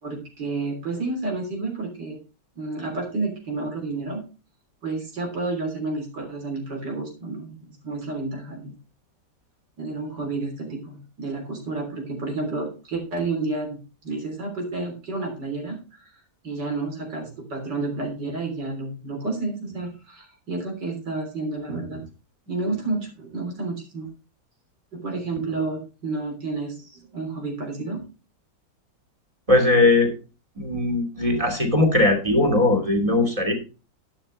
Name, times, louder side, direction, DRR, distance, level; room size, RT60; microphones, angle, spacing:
voice 1, 0.0-2.2 2.6-4.2 4.8-8.7 9.8-13.8 14.0-16.1 16.4-22.0 22.5-24.1 24.9-28.0, right 3 dB, 80° right, 2 dB, 4.1 m, -30 dB
voice 2, 29.5-30.1 30.6-33.5, left 2 dB, 20° right, 4 dB, 2.6 m, -19 dB
11.5 x 9.6 x 3.3 m, 0.32 s
omnidirectional pair, 1.8 m